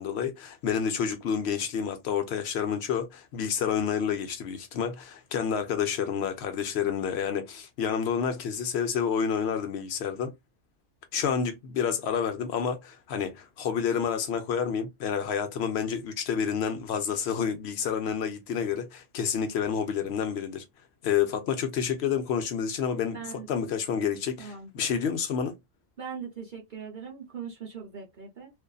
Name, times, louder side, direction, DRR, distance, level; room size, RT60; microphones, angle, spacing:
voice 1, 0.0-10.3 11.1-20.6 21.0-25.6, left 7 dB, 65° left, 0.8 m, -29 dB
voice 2, 23.1-23.5 24.4-24.7 26.0-28.5, right 6 dB, 50° right, 0.8 m, -40 dB
2.5 x 2.4 x 2.3 m
omnidirectional pair, 1.3 m